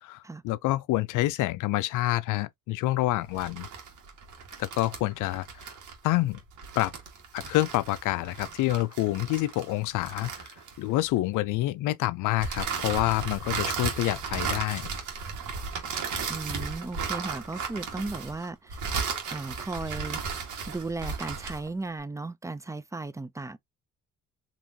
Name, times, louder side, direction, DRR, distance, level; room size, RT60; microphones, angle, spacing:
voice 1, 0.0-3.7 4.6-5.5 6.0-6.4 6.8-6.9 7.3-10.5 10.8-14.9, left 17 dB, 85° left, 0.5 m, -27 dB
sound 1, 3.3-11.1 12.4-21.7, right 5 dB, 80° right, 1.6 m, -35 dB
voice 2, 16.3-18.8 19.3-20.2 20.7-23.6, right 3 dB, 10° right, 0.4 m, -35 dB
4.3 x 2.9 x 2.7 m
cardioid pair, 90°, 30 cm